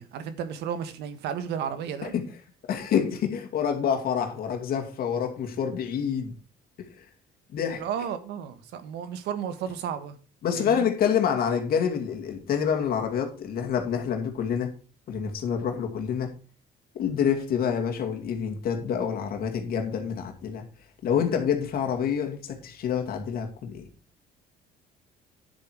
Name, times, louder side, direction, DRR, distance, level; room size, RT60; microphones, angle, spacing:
voice 1, 0.0-2.1 7.7-10.2 10.5-10.8, right 8 dB, 80° right, 1.5 m, -33 dB
voice 2, 2.7-6.3 6.8-6.9 7.5-7.9 10.4-14.7 15.1-16.3 16.9-20.6 21.0-23.8, left 7 dB, 60° left, 2.4 m, -27 dB
9.7 x 7.8 x 4.7 m
cardioid pair, 110°, 17 cm